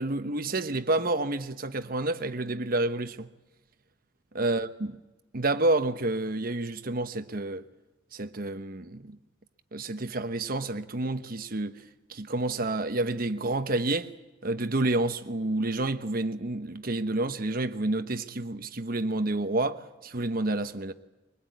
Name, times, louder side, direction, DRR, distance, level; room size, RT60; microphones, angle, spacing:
voice 1, 0.0-3.3 4.3-5.0 5.3-7.6 8.1-9.2 9.7-11.8 12.1-14.1 14.4-20.9, right 2 dB, 50° right, 1.1 m, -29 dB
24.5 x 20.5 x 9.3 m
head